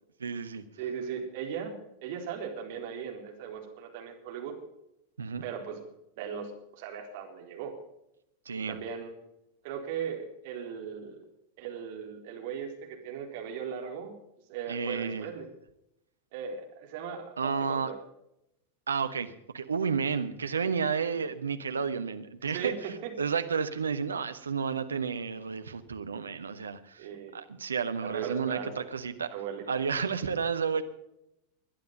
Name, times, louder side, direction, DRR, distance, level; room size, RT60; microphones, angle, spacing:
voice 1, 0.2-0.6 5.2-5.5 8.4-8.8 14.7-15.3 17.4-17.9 18.9-29.3 29.7-30.8, right 6 dB, 70° right, 9 dB, 1.2 m, -31 dB
voice 2, 0.8-4.5 5.4-5.8 6.2-7.8 8.7-9.1 9.6-11.3 11.6-14.1 14.5-15.5 16.3-18.0 21.2-21.3 22.5-23.1 27.0-27.4 28.0-28.7 29.3-29.8, right 7 dB, 50° right, 2 dB, 3.9 m, -38 dB
21.5 x 10.5 x 5.4 m, 0.84 s
figure-of-eight pair, 90°, 0 cm